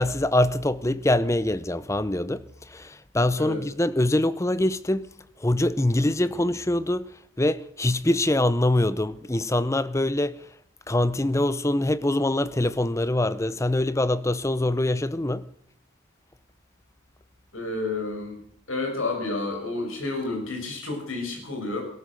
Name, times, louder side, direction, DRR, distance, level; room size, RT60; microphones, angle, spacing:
voice 1, 0.0-2.4 2.7-5.1 5.4-7.1 7.4-10.4 10.9-15.4, left 1 dB, 15° left, 0.6 m, -24 dB
voice 2, 17.5-18.4 18.7-21.8, left 3 dB, 75° left, 6.5 m, -30 dB
18.0 x 12.5 x 6.4 m
head